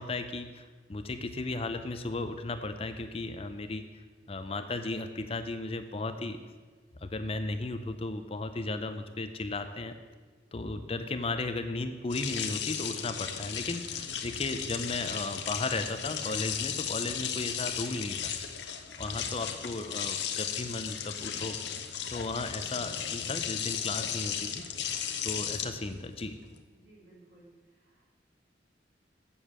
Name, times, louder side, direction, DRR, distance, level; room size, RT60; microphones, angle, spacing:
voice 1, 0.0-3.8 4.3-6.4 7.0-9.9 10.5-18.3 19.0-21.6 22.1-24.6 25.2-26.4, left 2 dB, 35° left, 8 dB, 0.6 m, -35 dB
sound 1, 12.1-26.6, left 8 dB, 70° left, 0.9 m, -35 dB
voice 2, 26.7-27.5 27.8-28.0, right 2 dB, 75° right, -5 dB, 3.4 m, -58 dB
8.3 x 7.1 x 7.4 m, 1.4 s
head